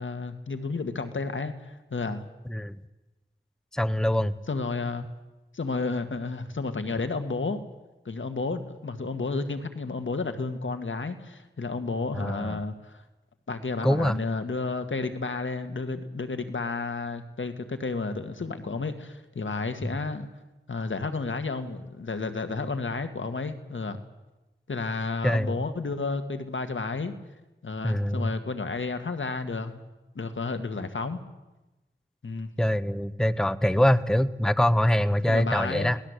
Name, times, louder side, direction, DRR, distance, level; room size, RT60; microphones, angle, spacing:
voice 1, 0.0-2.2 4.5-5.0 5.5-7.6 8.1-13.0 13.5-20.3 20.7-24.0 24.7-27.1 27.6-29.8 30.2-31.2 32.2-32.5 35.3-35.9, left 3 dB, 75° left, 8 dB, 2.0 m, -31 dB
voice 2, 3.7-4.4 12.1-12.6 13.8-14.2 25.2-25.6 27.8-28.3 32.6-36.0, equal, 5° left, 14 dB, 1.0 m, -24 dB
26.0 x 18.5 x 8.3 m, 1.1 s
wide cardioid pair, 55°, 20 cm